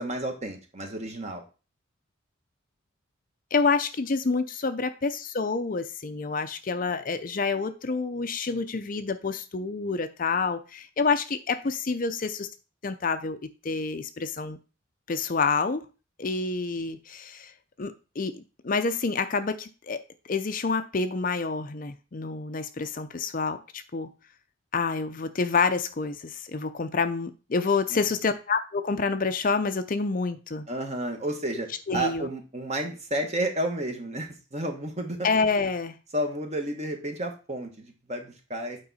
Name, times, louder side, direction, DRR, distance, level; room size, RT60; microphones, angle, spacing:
voice 1, 0.0-1.4 27.9-28.0 30.7-35.3 36.1-38.8, right 1 dB, 30° right, 4 dB, 1.3 m, -31 dB
voice 2, 3.5-12.5 12.8-13.4 13.6-14.6 15.1-15.8 16.2-17.5 17.8-20.0 20.3-24.1 24.7-30.7 31.9-32.3 35.2-36.0, left 4 dB, 40° left, 9 dB, 0.5 m, -28 dB
8.6 x 4.6 x 4.1 m, 0.33 s
head